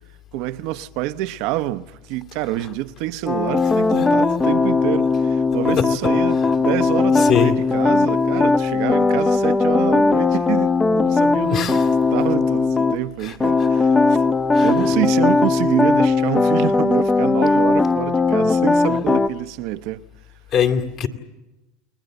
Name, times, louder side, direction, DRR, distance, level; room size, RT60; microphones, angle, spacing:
voice 1, 0.3-11.8 12.1-14.2 14.6-20.0, right 15 dB, 65° right, 0.9 m, -27 dB
sound 1, 3.3-13.0 13.4-19.3, left 3 dB, 15° left, 0.8 m, -18 dB
voice 2, 7.2-7.6 11.4-11.9 13.2-13.7 14.5-14.7 20.5-21.1, left 8 dB, 50° left, 2.5 m, -22 dB
30.0 x 20.5 x 8.0 m
hypercardioid pair, 105°, 0 cm